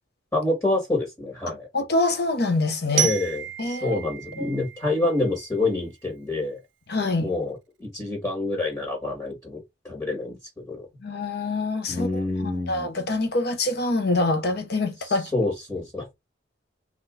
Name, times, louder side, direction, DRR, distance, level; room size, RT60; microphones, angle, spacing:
voice 1, 0.3-1.7 2.9-6.6 7.2-10.9 11.9-12.9 15.3-16.1, left 2 dB, 15° left, 1.9 m, -27 dB
voice 2, 1.7-3.1 3.6-4.0 4.4-4.5 6.9-7.3 11.0-15.3, left 2 dB, 55° left, 0.8 m, -25 dB
Glockenspiel, 3.0-5.8, right 10 dB, 70° right, 0.4 m, -31 dB
4.0 x 2.9 x 3.8 m
head